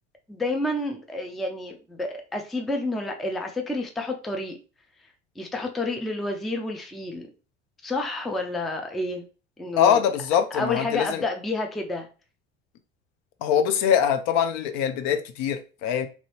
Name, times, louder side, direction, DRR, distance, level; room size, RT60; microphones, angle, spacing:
voice 1, 0.3-4.6 5.4-7.3 7.8-9.3 9.6-10.1 10.5-12.1, left 2 dB, ahead, 0.4 m, -29 dB
voice 2, 9.8-11.2 13.4-16.1, left 8 dB, 50° left, 0.5 m, -23 dB
2.9 x 2.6 x 3.0 m
figure-of-eight pair, 65°, 35 cm